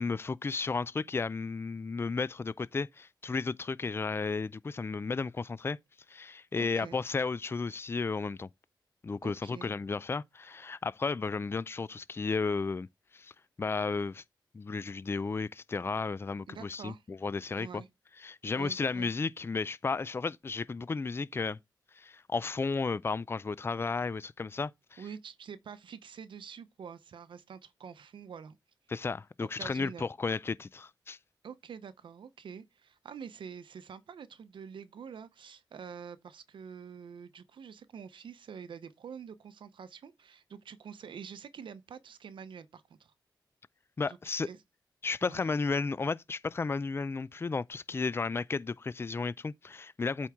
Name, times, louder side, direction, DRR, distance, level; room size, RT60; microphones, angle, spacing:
voice 1, 0.0-5.8 6.1-8.5 9.0-12.9 13.1-13.3 13.6-14.2 14.5-17.8 18.2-21.6 22.0-25.0 28.9-31.2 44.0-44.5 45.0-50.3, left 4 dB, 30° left, 0.3 m, -33 dB
voice 2, 6.6-7.0 9.2-9.7 16.5-17.0 17.6-17.9 18.5-19.1 25.0-28.6 29.4-30.1 31.4-43.1 44.1-44.2 44.4-44.6 45.2-45.4, right 7 dB, 80° right, 0.7 m, -46 dB
8.3 x 4.5 x 3.5 m
cardioid pair, 75°, 8 cm